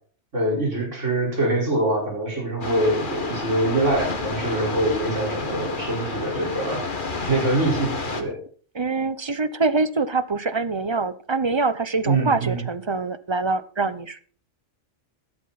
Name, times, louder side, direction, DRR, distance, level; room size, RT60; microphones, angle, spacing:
voice 1, 0.3-6.8 7.3-8.4 12.0-12.6, right 2 dB, 85° right, -1 dB, 5.1 m, -24 dB
sound 1, 2.6-8.2, left 3 dB, 45° left, 1.7 m, -30 dB
voice 2, 8.7-14.2, right 3 dB, 30° right, 14 dB, 0.6 m, -24 dB
13.5 x 12.0 x 4.1 m, 0.43 s
omnidirectional pair, 1.2 m